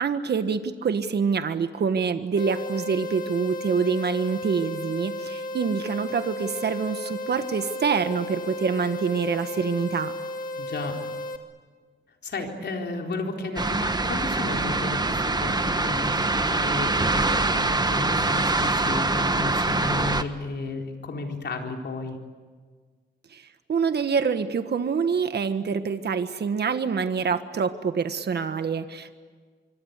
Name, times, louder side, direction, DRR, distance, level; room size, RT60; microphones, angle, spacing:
voice 1, 0.0-10.1 23.3-23.4 23.7-29.1, right 6 dB, 65° right, 9 dB, 1.5 m, -26 dB
sound 1, 2.4-11.4, left 1 dB, 50° left, 2.6 m, -34 dB
voice 2, 10.6-11.0 12.2-22.2, left 3 dB, 70° left, 2 dB, 4.3 m, -33 dB
sound 2, 13.6-20.2, right 2 dB, 20° right, 1.4 m, -24 dB
25.0 x 25.0 x 8.3 m, 1.5 s
wide cardioid pair, 95°, 18 cm